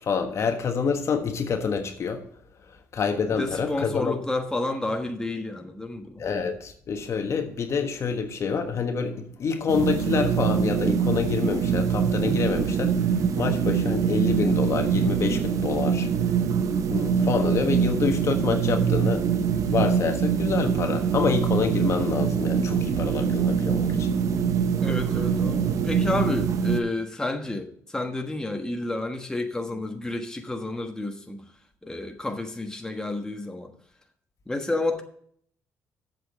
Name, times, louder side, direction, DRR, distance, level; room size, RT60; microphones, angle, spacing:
voice 1, 0.0-2.2 2.9-4.2 6.2-12.9 13.4-16.1 16.9-19.3 19.7-24.1, left 5 dB, 50° left, 1.4 m, -27 dB
voice 2, 3.3-6.2 24.8-31.4 31.8-33.7 34.5-35.0, left 2 dB, 10° left, 1.3 m, -30 dB
sound 1, 9.7-26.8, right 7 dB, 65° right, 0.9 m, -24 dB
7.9 x 6.2 x 7.5 m
cardioid pair, 80°, 6 cm